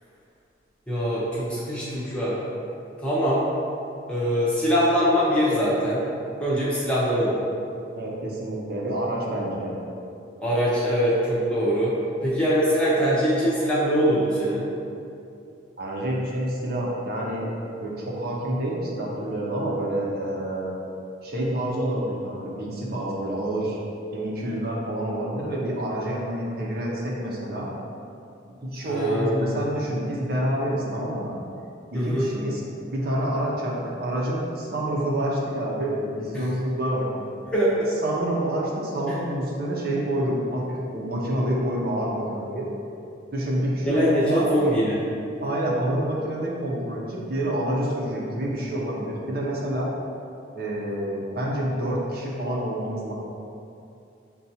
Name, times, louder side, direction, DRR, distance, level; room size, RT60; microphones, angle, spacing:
voice 1, 0.9-2.4 3.0-3.5 4.1-6.0 6.4-7.4 10.4-11.9 12.2-14.7 28.8-29.6 31.9-32.3 37.5-37.9 39.1-39.2 43.9-45.0, equal, 5° left, -8 dB, 0.7 m, -23 dB
voice 2, 8.0-9.7 15.8-17.5 17.8-20.7 21.2-23.8 24.1-27.7 28.6-31.4 31.9-32.6 32.9-37.3 38.0-42.7 43.3-44.5 45.4-49.9 50.5-53.1, right 1 dB, 50° right, -4 dB, 0.6 m, -28 dB
6.7 x 2.3 x 2.7 m, 2.6 s
head